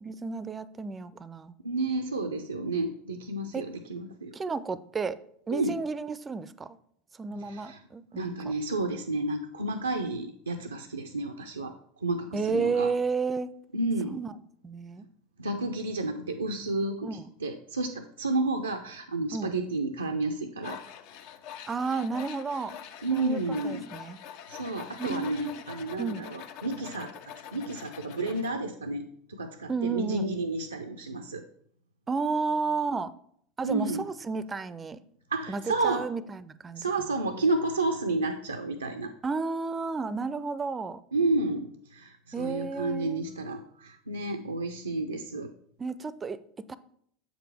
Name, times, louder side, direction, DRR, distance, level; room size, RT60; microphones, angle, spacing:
voice 1, 0.0-1.5 3.5-3.7 4.3-5.2 5.5-6.8 7.2-8.3 12.3-13.5 14.1-14.3 14.6-15.1 17.0-17.3 19.3-19.6 21.7-22.8 23.1-24.2 25.0-25.6 26.0-26.3 29.7-30.3 32.1-33.1 33.6-35.0 35.5-37.1 39.2-41.0 42.3-43.2 45.8-46.8, right 4 dB, 25° right, 16 dB, 0.4 m, -32 dB
voice 2, 1.6-4.3 5.5-5.7 7.3-7.8 8.2-11.7 12.0-12.9 13.7-14.2 15.4-20.8 23.0-23.8 24.5-27.1 27.5-31.4 33.6-34.0 35.3-36.1 36.8-39.1 41.1-45.5, right 2 dB, 90° right, 5 dB, 0.4 m, -31 dB
Tools, 20.6-28.6, left 9 dB, 60° left, 0.5 m, -45 dB
7.3 x 5.0 x 3.3 m, 0.66 s
figure-of-eight pair, 80°, 0 cm